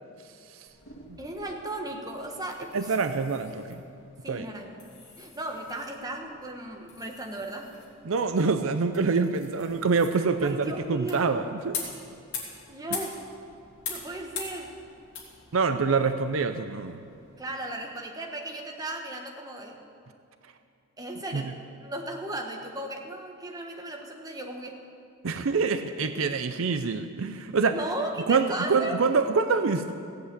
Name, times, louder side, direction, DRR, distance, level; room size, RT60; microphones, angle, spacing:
sound 1, 0.7-17.5, left 5 dB, 60° left, 2.8 m, -44 dB
voice 1, 1.2-2.9 4.2-4.9 5.2-7.7 10.1-11.3 12.7-13.2 13.9-14.7 17.4-19.8 21.0-24.8 27.7-29.0, right 1 dB, 15° right, 2 dB, 1.3 m, -36 dB
voice 2, 2.7-3.8 4.3-4.5 8.1-11.8 15.5-17.0 21.3-21.4 25.2-27.8 28.3-29.9, right 4 dB, 65° right, 9 dB, 0.6 m, -26 dB
16.0 x 8.0 x 8.2 m, 2.5 s
head